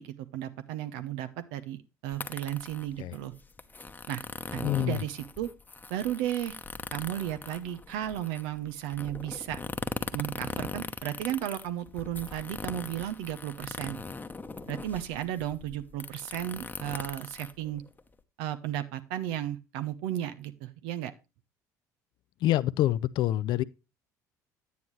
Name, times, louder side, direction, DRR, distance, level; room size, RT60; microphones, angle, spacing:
voice 1, 0.0-3.3 4.1-4.2 4.5-5.5 5.9-6.6 6.9-9.6 10.1-14.0 14.7-17.8 18.4-21.1, right 12 dB, 70° right, 0.8 m, -34 dB
sound 1, 2.1-18.2, left 3 dB, 20° left, 0.9 m, -40 dB
voice 2, 4.6-5.0 22.4-23.6, left 14 dB, 55° left, 0.4 m, -26 dB
9.5 x 9.4 x 3.2 m
hypercardioid pair, 65°, 9 cm